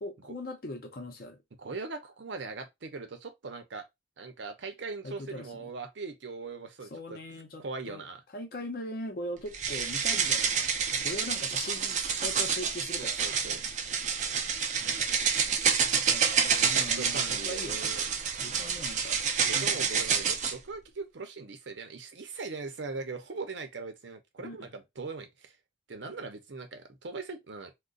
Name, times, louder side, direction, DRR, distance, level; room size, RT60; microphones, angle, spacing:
voice 1, 0.0-1.4 5.0-5.7 6.9-8.0 8.3-13.4 14.8-15.1 15.9-17.8 18.4-20.2 24.4-24.7, left 1 dB, 55° left, 0.6 m, -41 dB
voice 2, 1.6-3.9 4.2-7.2 7.6-8.2 13.0-13.6 16.6-18.1 19.4-25.6 25.9-27.8, right 4 dB, 85° right, 0.7 m, -40 dB
sound 1, 9.5-20.6, right 6 dB, 40° right, 0.4 m, -28 dB
2.4 x 2.2 x 3.7 m
head